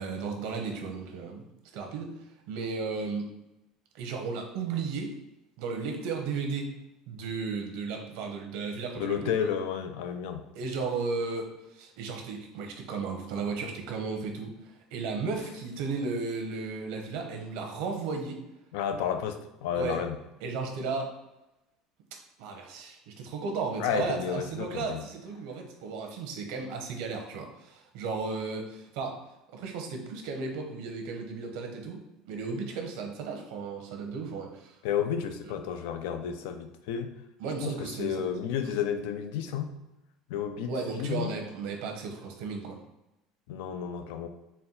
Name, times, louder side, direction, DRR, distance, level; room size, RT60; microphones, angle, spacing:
voice 1, 0.0-1.4 1.7-3.3 3.9-5.2 5.6-6.8 7.1-9.3 10.5-18.4 19.7-20.0 20.4-21.2 22.1-29.3 29.5-34.8 35.5-35.6 37.4-38.3 40.7-42.8, right 4 dB, 70° right, 3 dB, 0.8 m, -35 dB
voice 2, 9.0-10.5 18.7-20.2 23.8-25.0 34.8-37.1 37.6-39.7 40.3-40.7 41.0-41.3 43.5-44.3, left 8 dB, 85° left, 7 dB, 0.4 m, -31 dB
4.2 x 2.2 x 3.8 m, 0.93 s
cardioid pair, 165°, 0 cm